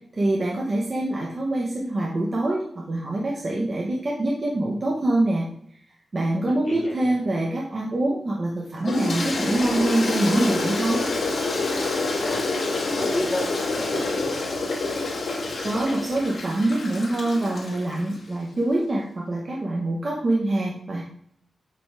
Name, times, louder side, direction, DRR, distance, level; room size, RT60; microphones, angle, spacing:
voice 1, 0.1-5.5 6.1-11.0 15.6-21.0, right 1 dB, 40° right, -3 dB, 1.4 m, -25 dB
voice 2, 6.5-7.1 12.2-12.4 12.8-14.4, left 1 dB, 20° left, -7 dB, 2.9 m, -31 dB
Toilet flush, 8.8-18.2, left 3 dB, 60° left, 2.0 m, -27 dB
8.0 x 4.1 x 5.1 m, 0.66 s
wide cardioid pair, 110°, 0 cm